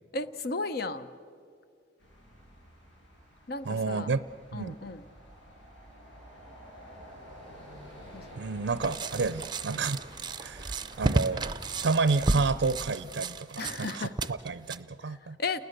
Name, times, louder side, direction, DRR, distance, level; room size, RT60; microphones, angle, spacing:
voice 1, 0.1-1.1 3.5-4.1 4.5-5.0 8.1-8.3 9.7-9.9 13.6-14.3 15.0-15.6, left 3 dB, 55° left, 12 dB, 0.8 m, -35 dB
sound 1, 2.0-13.0, equal, 90° left, 7.6 m, -50 dB
voice 2, 3.7-4.2 4.5-4.8 8.4-10.0 10.4-11.4 11.8-15.4, right 4 dB, 70° right, 13 dB, 0.5 m, -30 dB
sound 2, 8.8-14.8, right 3 dB, 25° right, 0.6 m, -32 dB
29.5 x 20.5 x 6.6 m, 2.3 s
head